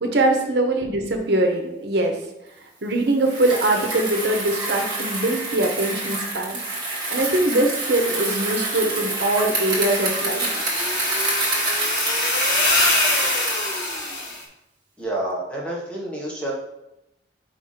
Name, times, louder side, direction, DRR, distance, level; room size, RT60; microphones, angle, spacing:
voice 1, 0.0-2.2 2.8-6.6 7.1-10.6, right 2 dB, 60° right, 3 dB, 0.9 m, -22 dB
Bicycle, 3.2-13.7, right 2 dB, 25° right, 1.9 m, -27 dB
sound 1, 9.5-14.4, left 2 dB, 80° left, 1.6 m, -24 dB
voice 2, 15.0-16.5, right 1 dB, 5° left, -4 dB, 1.4 m, -28 dB
5.0 x 3.6 x 5.6 m, 0.88 s
head